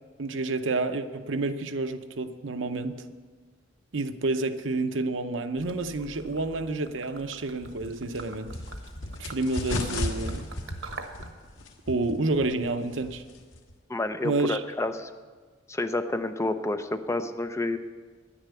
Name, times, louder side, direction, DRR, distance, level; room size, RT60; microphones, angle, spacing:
voice 1, 0.2-2.9 3.9-8.5 9.2-10.5 11.9-13.2 14.2-14.6, right 2 dB, 75° right, 9 dB, 0.8 m, -29 dB
Gurgling / Liquid, 5.5-11.3, right 3 dB, 90° right, 1.3 m, -45 dB
sound 1, 7.6-13.8, left 1 dB, 90° left, 1.5 m, -36 dB
voice 2, 13.9-15.1 15.7-17.8, left 2 dB, 15° left, 9 dB, 0.6 m, -29 dB
10.5 x 9.9 x 8.1 m, 1.4 s
head